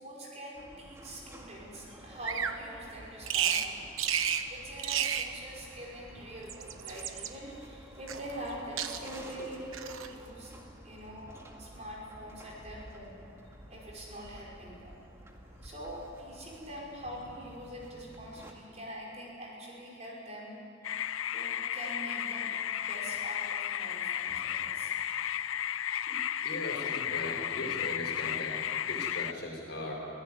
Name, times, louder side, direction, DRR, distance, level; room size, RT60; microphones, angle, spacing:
voice 1, 0.0-3.9 4.5-10.5 10.8-13.2 13.7-14.9 15.6-20.6 21.3-22.5 22.8-24.9, equal, 35° right, -3 dB, 5.5 m, -44 dB
sound 1, 0.5-18.5, equal, 15° right, 2.0 m, -52 dB
Bird vocalization bird call bird song, 2.2-2.6 3.3-3.7 4.0-4.5 4.8-5.3 6.3-7.3 8.1-8.5 8.8-9.2 9.7-10.1, right 8 dB, 90° right, 1.2 m, -32 dB
sound 2, 20.8-29.3, left 10 dB, 85° left, 0.6 m, -34 dB
voice 2, 26.4-29.9, left 1 dB, 55° left, -1 dB, 5.5 m, -39 dB
25.0 x 16.0 x 9.6 m, 2.7 s
head